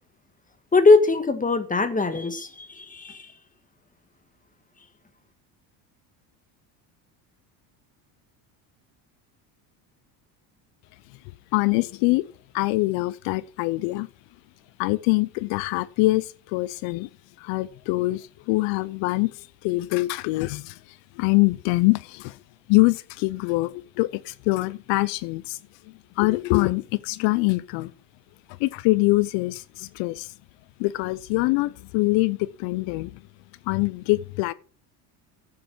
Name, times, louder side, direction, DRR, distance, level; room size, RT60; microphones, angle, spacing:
voice 1, 0.7-3.3, left 3 dB, 15° left, 1.8 m, -20 dB
voice 2, 11.5-12.3 12.5-14.1 14.8-17.1 17.4-20.8 21.2-22.4 22.7-25.6 26.2-27.9 28.6-30.3 30.8-33.2 33.7-34.5, left 22 dB, 75° left, 0.7 m, -24 dB
10.5 x 7.8 x 6.0 m
supercardioid pair, 95°, 45 cm